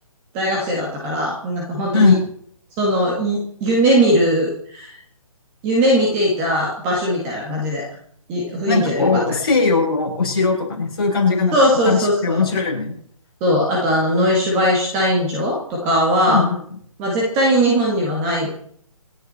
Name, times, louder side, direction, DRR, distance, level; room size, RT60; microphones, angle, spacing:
voice 1, 0.3-2.2 2.8-5.0 5.6-7.8 8.3-9.1 11.5-12.4 13.4-16.4 17.0-18.5, equal, 10° right, -2 dB, 1.8 m, -19 dB
voice 2, 8.7-11.6 11.8-12.9 16.3-16.6, left 4 dB, 40° left, -3 dB, 7.2 m, -19 dB
27.5 x 10.5 x 4.3 m, 0.62 s
hypercardioid pair, 175°, 18 cm